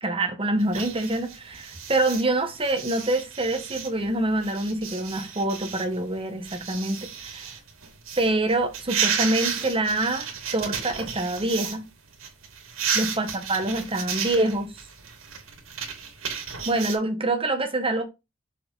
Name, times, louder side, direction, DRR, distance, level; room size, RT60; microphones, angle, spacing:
voice 1, 0.0-7.5 8.2-11.8 12.9-14.7 16.7-18.0, right 2 dB, 25° right, 1.4 m, -26 dB
sound 1, 0.6-11.8 12.1-17.0, right 7 dB, 80° right, 2.2 m, -33 dB
6.6 x 4.8 x 4.0 m
head